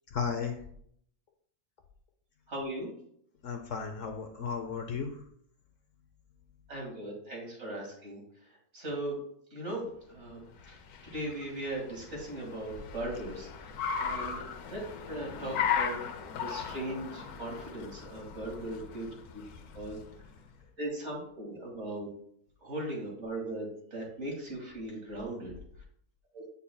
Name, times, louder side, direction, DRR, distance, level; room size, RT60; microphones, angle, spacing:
voice 1, 0.1-0.6 3.4-5.1, left 6 dB, 65° left, 4 dB, 1.0 m, -34 dB
voice 2, 2.5-2.9 6.7-8.2 8.7-9.2 9.5-10.4 10.7-10.8 11.0-13.5 14.0-14.4 14.7-14.8 15.1-16.0 16.4-19.4 19.7-20.0 20.8-22.1 22.6-25.5 26.3-26.4, right 1 dB, 50° right, -3 dB, 2.4 m, -38 dB
Car, 10.2-20.5, left 7 dB, 85° left, 1.1 m, -37 dB
8.5 x 5.3 x 2.3 m, 0.66 s
omnidirectional pair, 1.6 m